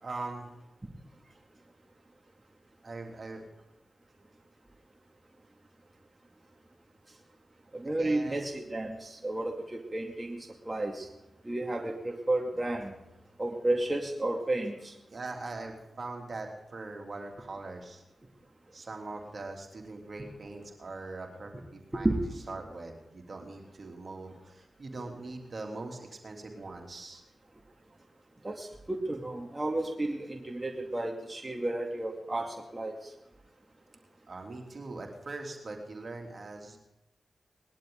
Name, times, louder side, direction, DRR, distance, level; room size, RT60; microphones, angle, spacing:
voice 1, 0.0-0.5 2.8-3.4 8.0-8.4 15.1-18.0 18.7-22.1 22.5-27.2 34.3-36.8, right 3 dB, 55° right, 2 dB, 3.0 m, -41 dB
voice 2, 7.7-11.1 11.4-12.9 13.4-14.9 21.9-22.2 28.4-32.9, right 2 dB, 25° right, 1 dB, 2.4 m, -32 dB
20.0 x 11.5 x 3.9 m, 0.95 s
supercardioid pair, 40°, 0 cm